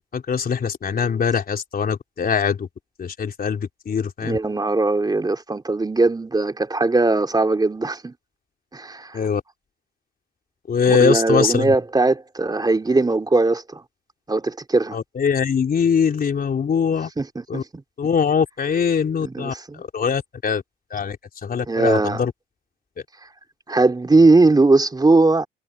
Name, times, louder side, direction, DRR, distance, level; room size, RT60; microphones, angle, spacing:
voice 1, 0.0-2.7 3.0-4.4 9.1-9.4 10.7-11.7 14.9-17.1 17.5-17.6 18.0-20.6 20.9-21.2 21.4-22.3, left 6 dB, 50° left, 3.8 m, -22 dB
voice 2, 4.2-8.1 8.7-9.2 10.9-13.8 14.3-15.0 17.2-17.8 19.2-19.8 21.7-22.2 23.7-25.5, right 3 dB, 20° right, 3.4 m, -19 dB
cardioid pair, 90°, 20 cm